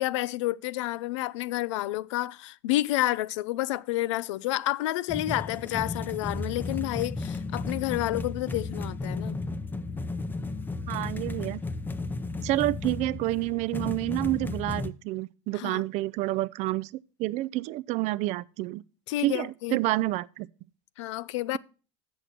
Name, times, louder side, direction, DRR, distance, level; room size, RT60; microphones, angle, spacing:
voice 1, 0.0-9.4 15.5-15.8 19.1-19.8 21.0-21.6, left 16 dB, 85° left, 0.4 m, -30 dB
sound 1, 5.1-14.9, left 3 dB, 15° left, 0.5 m, -34 dB
voice 2, 10.9-11.6 12.4-16.9 17.2-18.8 19.2-20.5, right 17 dB, 50° right, 0.4 m, -29 dB
7.8 x 6.4 x 5.8 m
supercardioid pair, 115°, 15 cm